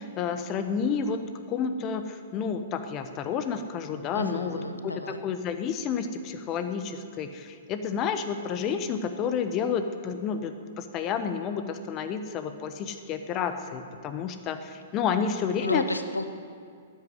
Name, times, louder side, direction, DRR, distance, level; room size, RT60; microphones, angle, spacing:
voice 1, 0.0-4.6 4.8-15.9, left 6 dB, 30° left, 9 dB, 1.0 m, -30 dB
voice 2, 4.1-5.2 15.6-16.2, left 2 dB, 85° left, 9 dB, 0.8 m, -31 dB
13.5 x 9.6 x 9.5 m, 2.2 s
figure-of-eight pair, 110°, 0 cm